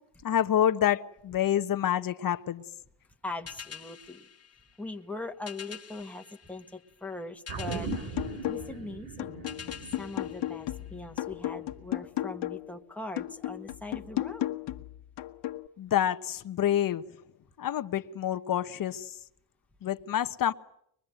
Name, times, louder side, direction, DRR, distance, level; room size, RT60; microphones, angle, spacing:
voice 1, 0.2-2.6 15.8-17.0 17.6-19.1 19.8-20.5, left 10 dB, 55° left, 10 dB, 1.2 m, -27 dB
voice 2, 3.2-4.3 4.8-8.2 8.5-9.4 10.0-14.6, left 2 dB, 5° left, 3 dB, 1.8 m, -41 dB
sound 1, 3.5-11.3, left 8 dB, 35° left, 1.8 m, -48 dB
sound 2, 7.5-12.1 12.4-12.5, right 4 dB, 65° right, 3.0 m, -40 dB
sound 3, 7.7-8.8 9.2-12.7 13.2-15.7, left 14 dB, 85° left, 1.4 m, -35 dB
24.0 x 21.5 x 9.1 m, 0.73 s
cardioid pair, 110°, 41 cm